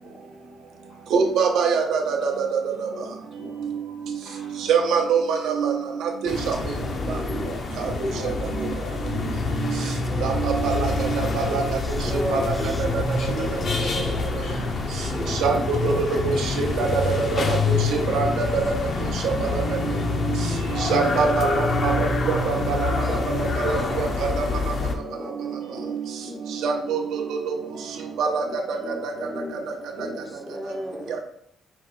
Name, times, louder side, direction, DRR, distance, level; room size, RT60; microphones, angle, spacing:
voice 1, 1.1-2.9 3.6-3.8 4.1-4.2 4.7-6.6 7.1-7.2 7.8-8.3 8.6-8.7 9.6-9.8 10.2-13.6 15.3-18.6 19.0-19.9 20.3-20.5 20.7-24.4 24.9-25.0 25.4-25.5 25.9-26.0 26.5-27.6 28.2-28.8, right 5 dB, 80° right, 3 dB, 0.7 m, -25 dB
voice 2, 2.9-3.8 4.2-4.5 6.5-9.7 10.0-10.3 11.9-17.0 19.3-19.8 20.5-20.8 21.2-21.6 23.1-23.2 23.7-24.0 24.5-26.0 26.2-26.5 28.3-29.6 30.0-30.3, left 1 dB, 70° left, 0 dB, 1.3 m, -37 dB
sound 1, 6.3-24.9, left 3 dB, 50° left, 0.6 m, -26 dB
voice 3, 7.7-8.4 9.9-10.2 11.5-13.1 14.7-15.4 17.8-18.4 22.7-23.2 23.7-23.8 29.9-31.2, equal, 5° left, 7 dB, 0.5 m, -37 dB
4.6 x 2.2 x 3.7 m, 0.68 s
cardioid pair, 90°, 0 cm